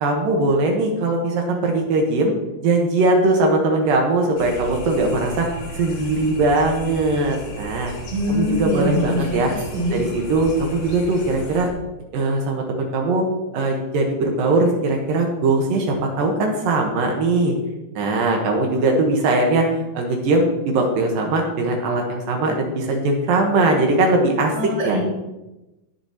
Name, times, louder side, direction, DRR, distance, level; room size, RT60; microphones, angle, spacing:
voice 1, 0.0-2.3 2.6-5.5 5.7-7.9 8.3-9.5 9.9-11.7 12.1-13.2 13.5-17.5 18.0-19.7 19.9-24.5 24.8-25.0, right 2 dB, 70° right, 2 dB, 2.2 m, -20 dB
sound 1, 4.4-11.7, equal, 65° left, 1.9 m, -35 dB
voice 2, 8.1-10.0 24.5-25.0, left 1 dB, 10° right, -10 dB, 2.2 m, -24 dB
19.5 x 6.8 x 2.9 m, 1.0 s
omnidirectional pair, 5.6 m